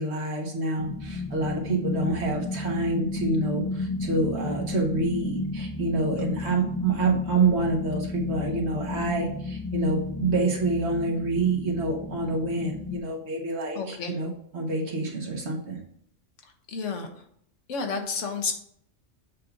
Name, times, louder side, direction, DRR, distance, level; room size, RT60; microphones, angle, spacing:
voice 1, 0.0-15.8, right 3 dB, 60° right, -1 dB, 1.5 m, -27 dB
sound 1, 0.8-13.0, left 3 dB, 20° left, 0.6 m, -32 dB
voice 2, 13.7-14.2 16.4-17.1 17.7-18.5, left 4 dB, 75° left, 4 dB, 1.3 m, -31 dB
7.3 x 2.7 x 5.8 m, 0.67 s
omnidirectional pair, 1.3 m